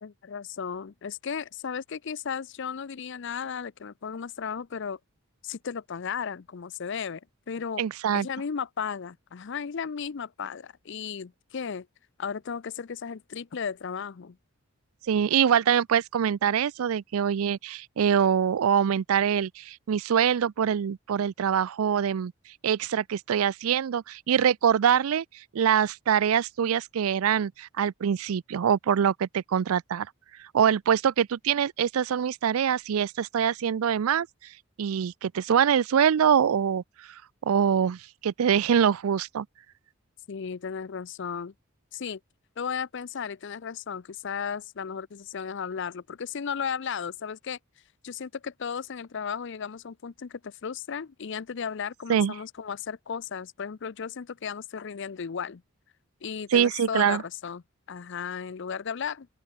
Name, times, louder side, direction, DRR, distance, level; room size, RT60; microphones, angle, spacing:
voice 1, 0.0-5.0 5.4-7.2 7.5-7.8 8.1-11.9 12.2-14.4 40.3-41.5 41.9-42.2 42.6-47.6 48.0-55.6 56.2-57.6 57.9-59.3, left 6 dB, 60° left, 0.5 m, -35 dB
voice 2, 7.8-8.3 15.1-22.3 22.6-25.2 25.5-30.1 30.5-34.3 34.8-36.8 37.5-39.5 52.1-52.3 56.5-57.2, right 8 dB, 80° right, 0.4 m, -24 dB
open air
head